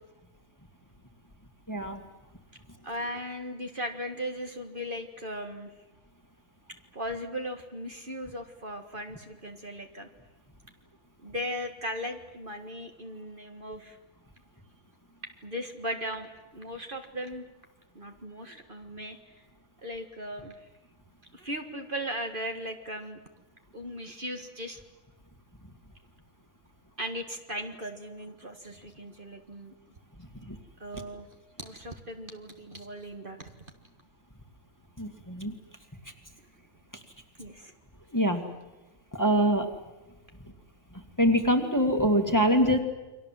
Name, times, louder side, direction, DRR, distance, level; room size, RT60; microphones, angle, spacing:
voice 1, 1.7-2.0 35.0-35.5 38.1-38.4 39.1-39.7 41.2-42.8, equal, 15° left, 3 dB, 2.1 m, -24 dB
voice 2, 2.8-5.7 6.9-10.1 11.2-14.0 15.4-17.4 18.0-19.3 19.8-20.5 21.3-23.2 23.7-24.8 27.0-29.7 30.8-31.3 31.6-33.5 37.4-37.7, equal, 40° right, 4 dB, 1.9 m, -37 dB
29.5 x 24.0 x 7.6 m, 1.1 s
omnidirectional pair, 1.4 m